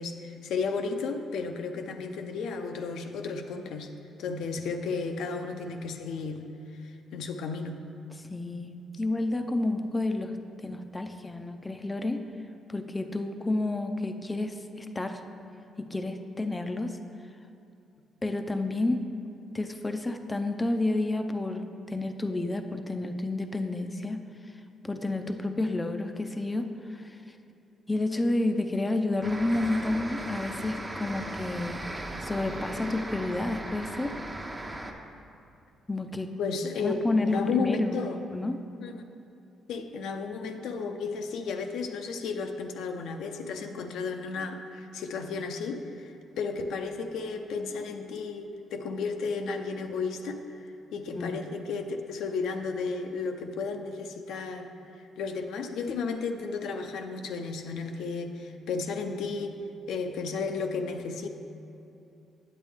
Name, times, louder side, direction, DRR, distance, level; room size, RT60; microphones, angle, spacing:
voice 1, 0.0-3.9 4.2-6.5 6.8-7.8 36.4-38.2 38.8-39.0 39.7-54.7 55.2-59.6 59.9-61.3, left 4 dB, 80° left, 5 dB, 0.6 m, -33 dB
voice 2, 8.1-12.3 12.7-15.2 15.8-17.0 18.2-19.1 19.5-24.5 24.8-27.2 27.9-31.9 32.2-34.2 35.9-36.4 36.8-38.0 38.3-38.6 51.1-51.5, left 2 dB, 15° left, 6 dB, 0.5 m, -30 dB
sound 1, 29.2-34.9, right 1 dB, 20° right, 0.8 m, -37 dB
8.8 x 8.2 x 3.5 m, 2.8 s
cardioid pair, 90°, 0 cm